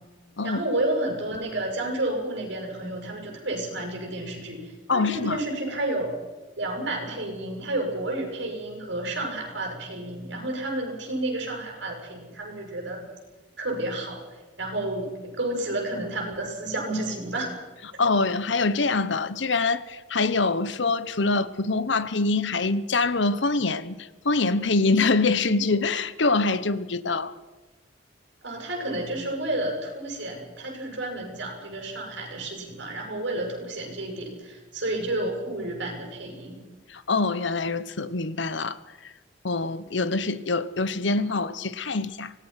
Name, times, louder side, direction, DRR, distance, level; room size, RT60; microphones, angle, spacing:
voice 1, 0.4-6.1 6.6-13.0 13.6-14.2 14.6-17.5 28.4-36.6, right 1 dB, 65° right, 7.3 m, -31 dB
voice 2, 4.9-5.4 18.0-24.0 24.2-27.3 36.9-38.8 39.4-42.3, left 3 dB, 65° left, 1.1 m, -24 dB
25.5 x 19.0 x 5.9 m
head